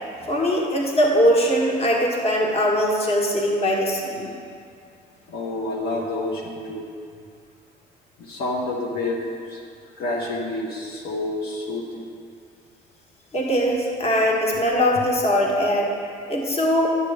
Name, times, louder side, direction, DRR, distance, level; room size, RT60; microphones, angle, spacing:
voice 1, 0.2-4.3 13.3-16.0 16.3-16.9, equal, 40° left, -2 dB, 1.4 m, -21 dB
voice 2, 5.3-6.8 8.2-9.2 9.5-9.6 10.0-12.1, left 2 dB, 65° left, -3 dB, 1.2 m, -28 dB
10.5 x 6.7 x 3.5 m, 2.3 s
cardioid pair, 110°, 17 cm